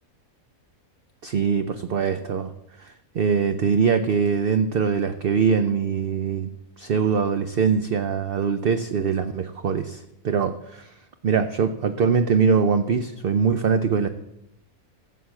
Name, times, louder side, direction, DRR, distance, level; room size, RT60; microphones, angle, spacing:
voice 1, 1.2-2.5 2.8-6.5 6.8-10.9 11.2-14.1, right 6 dB, 55° right, 10 dB, 0.7 m, -22 dB
14.5 x 8.1 x 7.3 m, 0.87 s
omnidirectional pair, 1.5 m